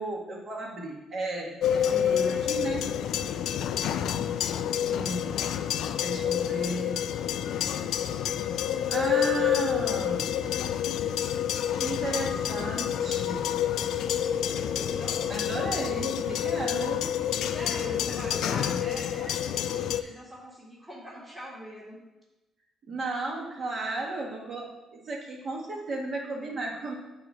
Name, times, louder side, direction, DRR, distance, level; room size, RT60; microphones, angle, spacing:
voice 1, 0.0-2.9 4.9-5.4 6.0-7.0 8.9-10.3 11.7-13.5 15.3-17.1 22.9-26.9, right 2 dB, 50° right, -2 dB, 1.9 m, -34 dB
sound 1, 1.6-20.0, left 10 dB, 80° left, 0.3 m, -28 dB
voice 2, 14.7-15.2 17.5-22.0, equal, 15° right, -7 dB, 1.9 m, -42 dB
8.6 x 3.0 x 6.3 m, 1.0 s
cardioid pair, 90°, 0 cm